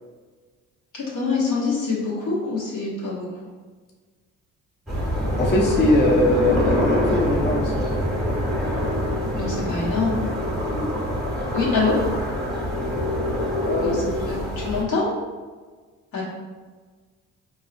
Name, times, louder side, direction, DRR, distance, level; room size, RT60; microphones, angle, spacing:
voice 1, 0.9-3.3 9.4-10.2 11.5-12.0 13.8-15.1 16.1-16.2, left 4 dB, 75° left, -5 dB, 1.2 m, -25 dB
sound 1, 4.9-14.8, left 1 dB, ahead, 1.0 m, -25 dB
voice 2, 5.3-7.8 10.7-10.9 13.7-14.0, left 1 dB, 35° left, -1 dB, 0.5 m, -21 dB
3.9 x 2.7 x 2.4 m, 1.4 s
cardioid pair, 90°, 30 cm